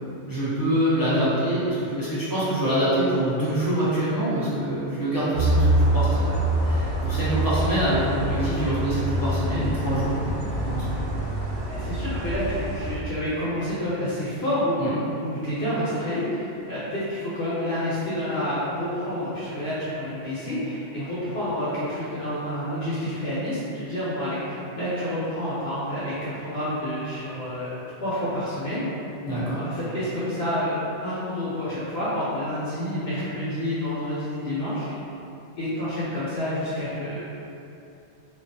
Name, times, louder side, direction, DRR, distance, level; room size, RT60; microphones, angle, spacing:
voice 1, 0.3-6.3 6.6-11.0 14.8-14.9 29.2-29.6, right 1 dB, 30° left, -11 dB, 0.4 m, -25 dB
sound 1, 5.3-13.0, right 1 dB, 80° right, 0.9 m, -25 dB
voice 2, 11.7-28.9 29.6-34.9 35.6-37.2, left 1 dB, 65° left, -10 dB, 0.8 m, -29 dB
2.3 x 2.3 x 2.5 m, 2.7 s
omnidirectional pair, 1.2 m